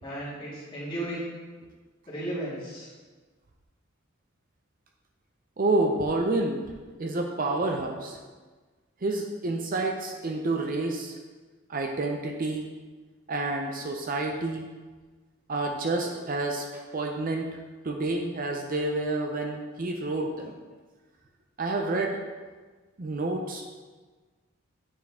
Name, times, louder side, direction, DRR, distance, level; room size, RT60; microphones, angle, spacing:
voice 1, 0.0-1.3 2.1-2.9, right 1 dB, 25° left, -8 dB, 2.1 m, -34 dB
voice 2, 5.6-6.6 7.0-8.2 9.0-11.2 11.7-12.7 13.3-14.6 15.5-17.4 17.8-20.5 21.6-22.2 23.0-23.7, right 2 dB, 40° right, 2 dB, 0.5 m, -29 dB
8.9 x 4.5 x 3.5 m, 1.4 s
head